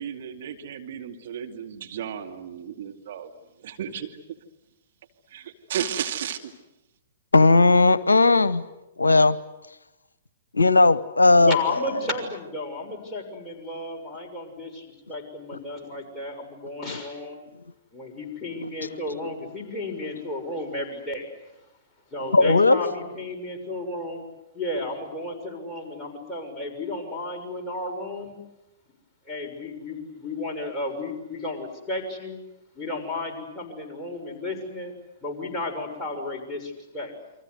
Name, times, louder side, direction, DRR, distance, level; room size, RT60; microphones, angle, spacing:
voice 1, 0.0-3.3 3.6-4.2 5.3-6.5, right 9 dB, 55° right, 3 dB, 2.5 m, -33 dB
voice 2, 7.3-8.6 9.0-9.4 10.5-11.6 16.8-17.0 18.8-18.9 22.3-22.9, left 3 dB, 75° left, 17 dB, 0.9 m, -17 dB
voice 3, 11.4-17.4 17.9-21.3 22.1-24.2 24.5-28.4 29.3-32.4 32.7-34.9 35.2-37.1, left 2 dB, 10° left, -1 dB, 6.6 m, -33 dB
29.5 x 24.5 x 8.1 m, 0.94 s
figure-of-eight pair, 110°, 0 cm